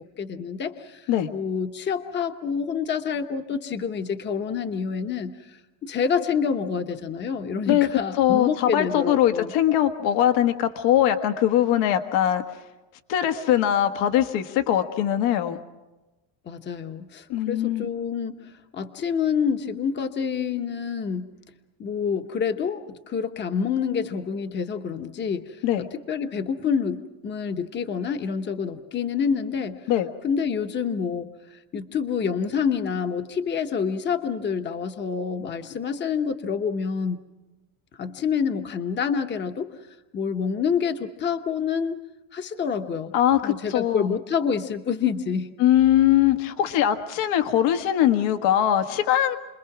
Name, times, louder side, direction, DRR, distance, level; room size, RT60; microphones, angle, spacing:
voice 1, 0.0-5.3 5.8-9.5 16.4-21.3 21.8-29.8 30.2-31.3 31.7-37.2 38.0-39.7 40.1-42.0 42.3-43.1 43.4-45.5, left 6 dB, 20° left, 7 dB, 1.1 m, -27 dB
voice 2, 8.2-12.4 13.1-15.6 17.3-17.9 25.6-25.9 29.9-30.1 43.1-44.1 45.6-49.4, left 11 dB, 70° left, 7 dB, 1.7 m, -21 dB
30.0 x 21.5 x 6.0 m, 1.1 s
cardioid pair, 160°, 48 cm